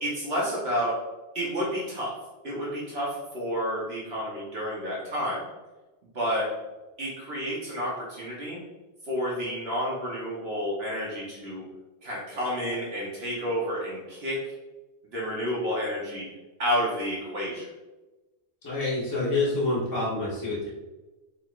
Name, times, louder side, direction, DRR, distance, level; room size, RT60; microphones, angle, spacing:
voice 1, 0.0-0.9 1.3-2.1 2.4-5.4 6.1-6.5 7.0-8.6 9.0-11.6 12.0-14.5 15.1-16.3 16.6-17.7, equal, 65° right, -6 dB, 1.3 m, -30 dB
voice 2, 18.6-20.7, left 2 dB, 20° left, -7 dB, 1.0 m, -27 dB
4.5 x 3.5 x 2.4 m, 1.1 s
omnidirectional pair, 1.1 m